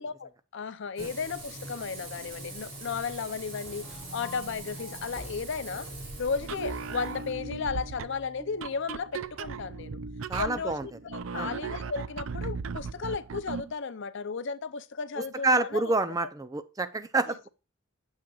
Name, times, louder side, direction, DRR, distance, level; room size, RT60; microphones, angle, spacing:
voice 1, 0.0-3.9 4.1-5.9 6.2-10.0 10.4-15.9, left 5 dB, 60° left, 0.6 m, -34 dB
Frying (food), 1.0-7.3, right 2 dB, 55° right, 4.9 m, -43 dB
sound 1, 3.7-9.7, equal, 20° left, 1.9 m, -48 dB
sound 2, 6.4-13.7, right 5 dB, 70° right, 0.4 m, -37 dB
voice 2, 10.3-10.9 11.3-11.5 15.2-17.5, right 2 dB, 15° right, 0.5 m, -28 dB
8.8 x 7.4 x 2.4 m
head